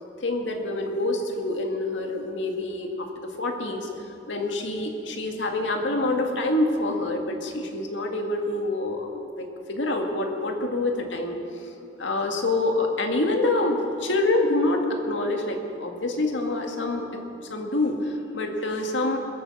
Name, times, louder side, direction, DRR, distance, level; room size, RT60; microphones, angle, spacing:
voice 1, 0.2-11.7 12.0-19.2, left 2 dB, 85° left, 3 dB, 2.0 m, -26 dB
21.0 x 9.0 x 7.7 m, 2.7 s
head